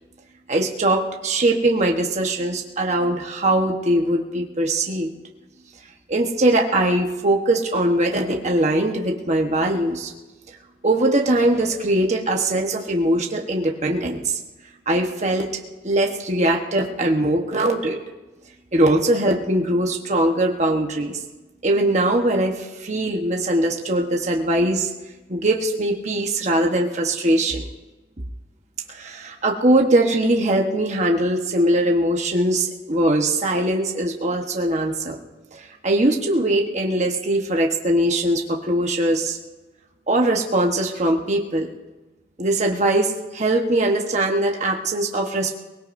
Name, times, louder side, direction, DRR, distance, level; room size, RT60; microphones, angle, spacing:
voice 1, 0.5-5.1 6.1-10.1 10.8-14.4 14.9-15.5 15.8-18.0 18.7-21.2 21.6-24.9 25.3-27.7 28.9-35.2 35.5-39.4 40.1-41.7 42.4-45.5, right 1 dB, 40° right, 0 dB, 1.2 m, -21 dB
23.0 x 20.0 x 2.7 m, 1.1 s
head